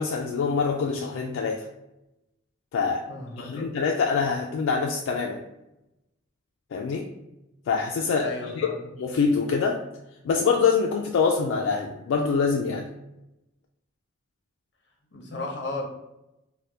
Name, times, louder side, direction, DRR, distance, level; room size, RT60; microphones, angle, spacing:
voice 1, 0.0-1.7 2.7-3.0 3.4-5.4 6.7-7.1 7.7-8.3 8.6-8.7 9.0-9.8 10.2-12.8, left 5 dB, 80° left, 1 dB, 0.3 m, -25 dB
voice 2, 3.1-3.8 8.2-8.9 15.1-15.8, left 3 dB, 55° left, 0 dB, 0.7 m, -34 dB
3.3 x 2.1 x 2.7 m, 0.91 s
head